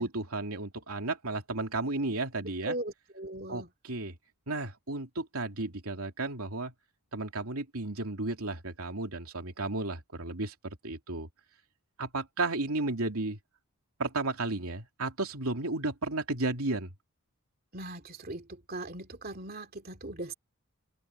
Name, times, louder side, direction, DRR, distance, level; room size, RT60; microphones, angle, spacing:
voice 1, 0.0-2.8 3.5-4.1 4.5-6.7 7.1-11.3 12.0-13.4 14.0-16.9, right 2 dB, 85° right, 3.0 m, -33 dB
voice 2, 2.6-3.7 17.7-20.3, right 1 dB, 45° right, 2.7 m, -39 dB
open air
head